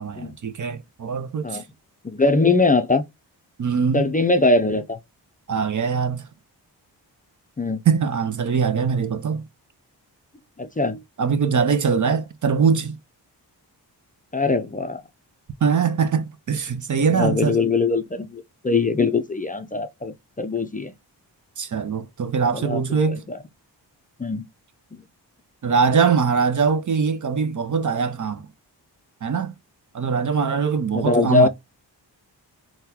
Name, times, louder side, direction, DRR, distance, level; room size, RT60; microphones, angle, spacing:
voice 1, 0.0-1.6 3.6-4.1 5.5-6.3 7.9-9.5 11.2-13.0 15.6-17.6 21.6-23.3 25.6-28.5 29.2-29.5 29.9-31.5, right 6 dB, 45° right, 0.6 m, -22 dB
voice 2, 2.0-3.0 3.9-5.0 7.6-7.8 10.6-11.0 14.3-15.0 17.1-20.9 22.5-23.0 23.3-23.4 24.2-24.5 30.9-31.5, left 3 dB, 20° left, 0.5 m, -21 dB
3.8 x 2.3 x 2.8 m
cardioid pair, 50°, 43 cm